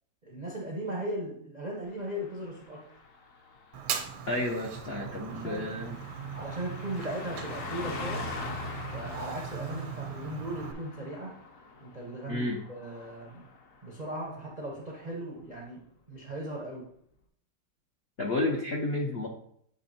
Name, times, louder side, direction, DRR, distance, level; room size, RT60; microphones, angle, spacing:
voice 1, 0.2-2.9 5.2-5.7 6.3-8.3 8.9-11.4 11.8-13.5 13.8-16.9, right 1 dB, 65° right, -1 dB, 0.4 m, -38 dB
Car passing by, 1.9-13.9 14.2-14.4, left 3 dB, 60° left, 0.8 m, -43 dB
Fire, 3.7-10.7, right 8 dB, 85° right, 1.6 m, -39 dB
voice 2, 4.3-6.0 12.3-12.6 18.2-19.3, left 2 dB, 80° left, -1 dB, 0.5 m, -31 dB
8.0 x 3.3 x 4.3 m, 0.68 s
omnidirectional pair, 2.3 m